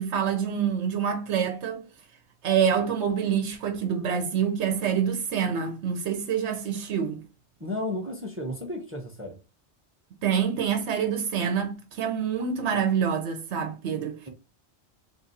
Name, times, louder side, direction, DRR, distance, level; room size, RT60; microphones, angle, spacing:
voice 1, 0.0-1.8 2.4-7.2 10.2-14.2, right 7 dB, 85° right, 1.0 m, -26 dB
voice 2, 7.6-9.4, left 1 dB, 15° right, 0.7 m, -33 dB
3.5 x 2.4 x 4.1 m
omnidirectional pair, 1.1 m